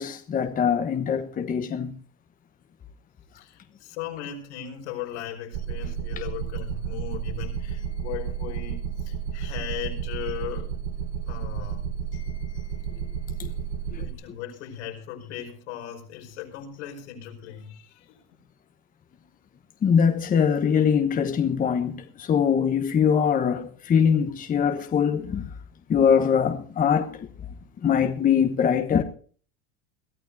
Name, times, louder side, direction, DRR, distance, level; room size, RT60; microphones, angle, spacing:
voice 1, 0.0-2.0 13.4-13.5 13.9-14.0 19.8-25.5 25.9-27.3 27.8-29.0, left 7 dB, 25° left, 1.1 m, -22 dB
voice 2, 3.3-10.7 11.2-13.6 13.9-18.2, left 10 dB, 80° left, 5.1 m, -38 dB
sound 1, 5.5-14.1, right 8 dB, 55° right, 1.0 m, -32 dB
22.0 x 13.5 x 2.7 m
supercardioid pair, 125°, 33 cm